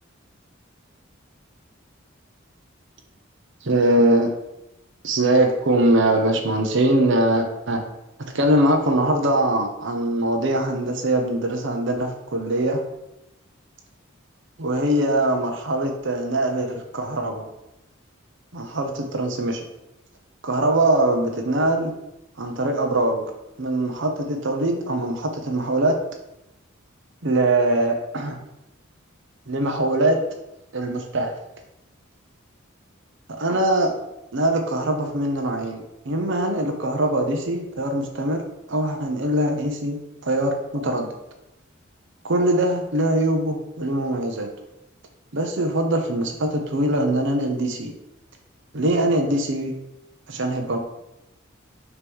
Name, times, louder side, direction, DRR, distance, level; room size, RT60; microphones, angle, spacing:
voice 1, 3.6-4.3 5.0-7.8 8.3-12.8 14.6-17.4 18.5-19.6 20.4-21.9 22.4-23.2 23.6-25.9 27.2-28.4 29.5-30.2 30.7-31.3 33.4-33.9 34.3-38.4 38.7-41.1 42.2-44.5 45.3-47.9 48.7-49.7 50.3-50.8, right 1 dB, 60° right, 3 dB, 0.9 m, -22 dB
6.6 x 3.1 x 5.4 m, 0.90 s
head